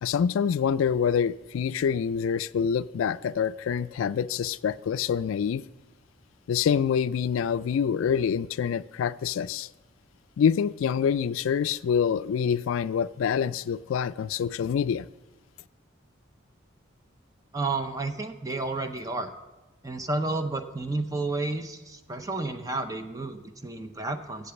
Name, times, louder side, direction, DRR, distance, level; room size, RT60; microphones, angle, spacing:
voice 1, 0.0-5.6 6.5-9.7 10.4-15.1, left 7 dB, 85° left, 17 dB, 0.3 m, -26 dB
voice 2, 17.5-19.3 19.8-24.5, right 3 dB, 15° right, 7 dB, 0.6 m, -31 dB
8.2 x 8.0 x 6.9 m, 1.1 s
head